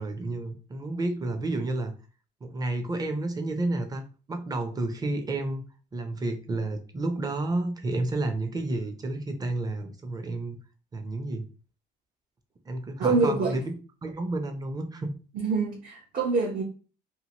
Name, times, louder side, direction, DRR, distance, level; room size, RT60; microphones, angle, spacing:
voice 1, 0.0-1.9 2.4-4.0 4.3-5.6 5.9-10.6 10.9-11.5 12.7-13.7 14.0-15.1, right 2 dB, 20° right, 0.6 m, -30 dB
voice 2, 13.0-13.6 15.3-16.6, right 4 dB, 55° right, 0.9 m, -25 dB
2.8 x 2.6 x 2.9 m
cardioid pair, 110°, 17 cm